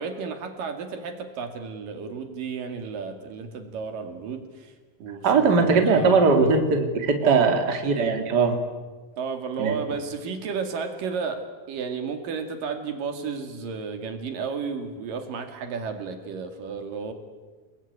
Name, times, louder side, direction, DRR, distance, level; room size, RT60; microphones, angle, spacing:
voice 1, 0.0-4.7 5.0-6.5 7.2-7.5 9.2-11.4 11.7-17.1, right 5 dB, 75° right, 6 dB, 3.9 m, -32 dB
voice 2, 5.2-8.6 9.6-9.8, right 4 dB, 30° right, 5 dB, 2.9 m, -20 dB
30.0 x 20.5 x 9.6 m, 1.3 s
omnidirectional pair, 4.0 m